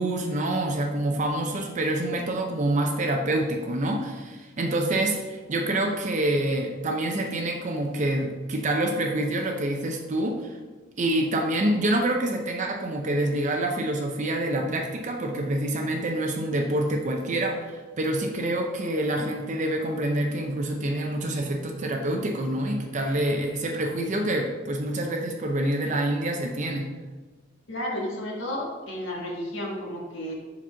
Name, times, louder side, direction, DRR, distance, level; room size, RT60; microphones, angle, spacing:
voice 1, 0.0-10.6 11.0-26.9, right 1 dB, 40° right, 2 dB, 0.5 m, -27 dB
voice 2, 27.7-30.3, left 1 dB, 75° left, -2 dB, 1.5 m, -32 dB
5.0 x 4.1 x 5.7 m, 1.3 s
head